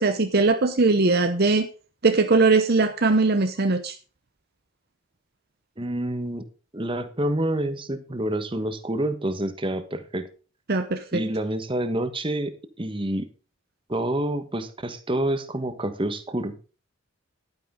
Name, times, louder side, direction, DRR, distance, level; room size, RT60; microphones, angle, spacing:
voice 1, 0.0-1.7 2.0-4.0 10.7-11.2, right 3 dB, 45° right, 8 dB, 0.8 m, -20 dB
voice 2, 5.8-6.4 6.7-10.3 11.1-12.5 12.8-13.3 13.9-16.5, right 1 dB, 25° right, 10 dB, 1.2 m, -28 dB
11.5 x 9.5 x 3.7 m, 0.36 s
head